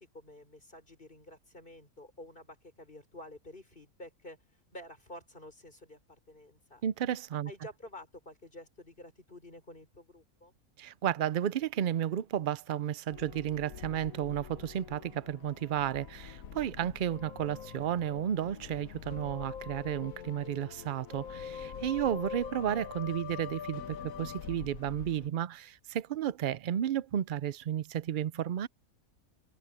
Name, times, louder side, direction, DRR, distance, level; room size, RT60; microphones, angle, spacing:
voice 1, 0.0-4.4 4.7-6.8 7.5-10.5, left 1 dB, 35° left, 5.7 m, -50 dB
voice 2, 6.8-7.5 10.8-28.7, right 10 dB, 75° right, 0.4 m, -33 dB
sound 1, 13.1-25.3, left 7 dB, 70° left, 1.4 m, -44 dB
omnidirectional pair, 1.5 m